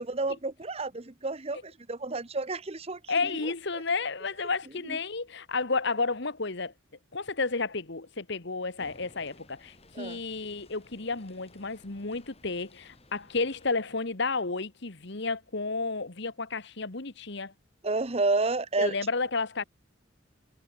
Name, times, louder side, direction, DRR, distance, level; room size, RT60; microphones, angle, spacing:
voice 1, 0.0-3.5 4.8-5.0 9.9-10.2 17.8-18.9, right 3 dB, 30° right, 1.0 m, -30 dB
voice 2, 3.1-6.7 7.1-17.5 18.8-19.6, left 3 dB, 60° left, 1.5 m, -31 dB
sound 1, 8.8-13.8, left 2 dB, 30° left, 5.1 m, -57 dB
head